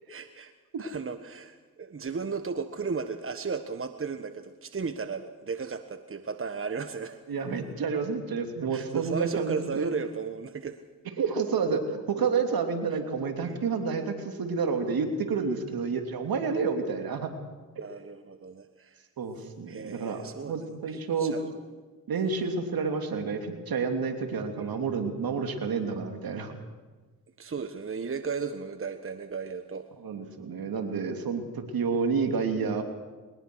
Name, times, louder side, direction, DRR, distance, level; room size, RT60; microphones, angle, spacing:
voice 1, 0.1-0.5 0.8-7.2 8.7-10.8 12.9-13.0 13.4-13.6 15.4-15.6 17.8-19.0 19.7-21.6 24.5-24.8 27.4-29.9, right 5 dB, 35° right, 9 dB, 1.4 m, -35 dB
voice 2, 7.3-9.9 11.2-17.3 19.2-21.4 22.1-26.5 30.0-32.8, right 5 dB, 60° right, 6 dB, 3.2 m, -29 dB
21.5 x 20.0 x 6.4 m, 1.3 s
supercardioid pair, 50°, 39 cm